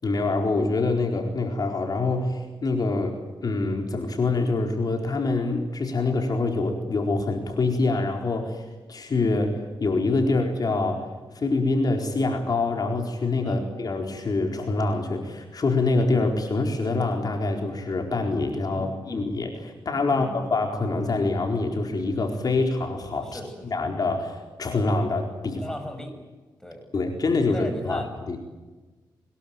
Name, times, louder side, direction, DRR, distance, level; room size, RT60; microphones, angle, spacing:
voice 1, 0.0-25.6 26.9-28.4, left 3 dB, 50° left, 3 dB, 4.3 m, -25 dB
voice 2, 18.7-19.3 20.1-20.5 23.2-23.8 25.6-26.1 26.6-26.9 27.5-28.1, equal, 5° left, 5 dB, 6.5 m, -36 dB
23.5 x 21.5 x 9.1 m, 1.3 s
cardioid pair, 85°, 8 cm